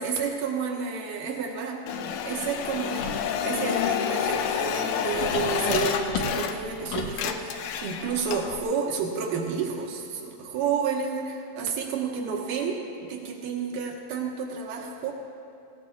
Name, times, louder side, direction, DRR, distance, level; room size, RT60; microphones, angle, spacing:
voice 1, 0.0-1.8 2.2-15.1, right 6 dB, 80° right, -1 dB, 2.9 m, -30 dB
sound 1, 1.9-6.8 7.1-8.6, left 7 dB, 80° left, 2.1 m, -29 dB
sound 2, 3.0-3.3 5.1-7.2, left 3 dB, 60° left, 1.6 m, -33 dB
19.0 x 17.0 x 2.5 m, 2.8 s
omnidirectional pair, 3.8 m